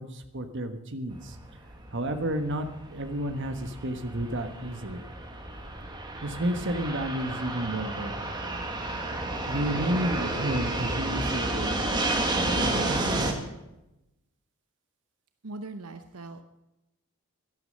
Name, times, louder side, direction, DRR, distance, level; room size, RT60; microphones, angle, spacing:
voice 1, 0.0-1.4 1.9-5.1 6.2-8.3 9.5-11.8 12.4-13.4, right 1 dB, 55° right, 8 dB, 1.4 m, -31 dB
Fixed-wing aircraft airplane, 1.1-13.3, right 2 dB, 20° right, 1.5 m, -31 dB
voice 2, 15.4-16.4, right 2 dB, 80° right, 8 dB, 0.8 m, -40 dB
12.0 x 12.0 x 6.5 m, 0.92 s
head